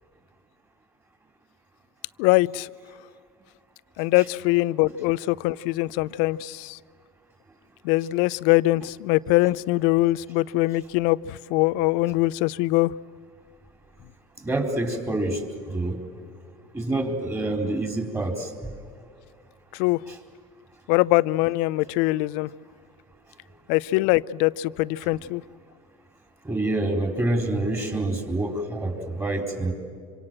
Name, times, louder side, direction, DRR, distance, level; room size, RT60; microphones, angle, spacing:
voice 1, 2.2-2.7 4.0-6.8 7.8-12.9 19.7-20.0 20.9-22.5 23.7-25.4, left 19 dB, 65° left, 0.6 m, -22 dB
voice 2, 14.4-16.0 16.7-18.5 20.1-20.2 26.4-29.7, right 2 dB, 15° right, 4.2 m, -27 dB
26.0 x 26.0 x 7.7 m
supercardioid pair, 110°, 19 cm